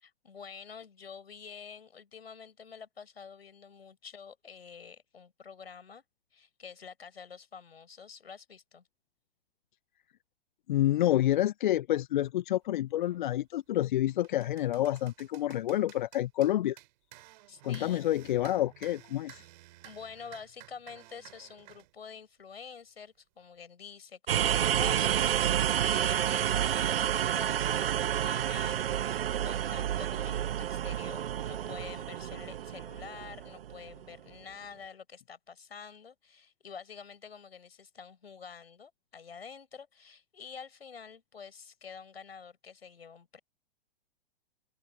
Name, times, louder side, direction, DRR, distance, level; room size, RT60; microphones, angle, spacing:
voice 1, 0.0-6.0 6.3-8.8 17.5-18.1 19.8-43.4, left 6 dB, 70° left, 6.1 m, -48 dB
voice 2, 10.7-16.8 17.6-19.4, left 13 dB, 50° left, 0.9 m, -28 dB
sound 1, 13.0-13.2 13.7-21.9, right 17 dB, 45° right, 3.4 m, -54 dB
sound 2, 24.3-34.0, right 10 dB, 65° right, 0.6 m, -30 dB
figure-of-eight pair, 110°, 31 cm